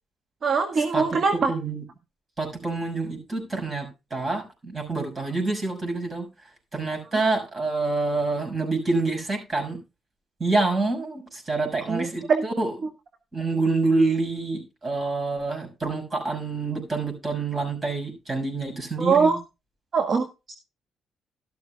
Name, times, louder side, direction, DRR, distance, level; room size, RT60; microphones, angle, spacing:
voice 1, 0.4-1.5 11.9-12.4 19.0-19.4 19.9-20.5, right 5 dB, 50° right, 6 dB, 1.7 m, -22 dB
voice 2, 1.5-1.8 2.4-6.3 6.7-9.8 10.4-12.7 13.3-19.4, right 3 dB, 30° right, 4 dB, 6.2 m, -27 dB
13.0 x 13.0 x 2.3 m, 0.27 s
cardioid pair, 90°, 0 cm